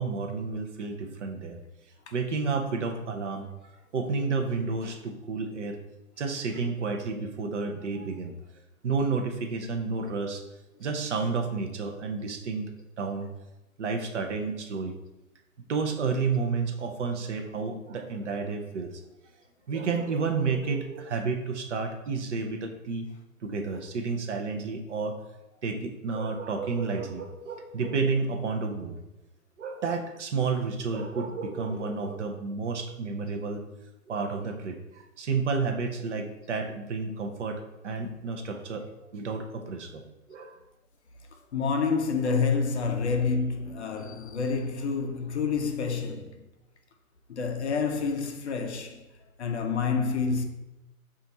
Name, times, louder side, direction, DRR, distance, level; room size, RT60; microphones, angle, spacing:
voice 1, 0.0-1.6 2.1-3.5 3.9-5.8 6.2-8.3 8.8-10.4 10.8-12.7 13.0-13.3 13.8-14.9 15.7-19.0 19.7-23.1 23.4-25.2 25.6-29.0 29.6-33.6 34.1-40.0 40.3-40.6, right 4 dB, 55° right, 0.5 m, -31 dB
voice 2, 41.5-46.5 47.3-49.1 49.4-50.4, left 5 dB, 50° left, 0.4 m, -28 dB
4.0 x 2.5 x 3.9 m
hypercardioid pair, 155°, 44 cm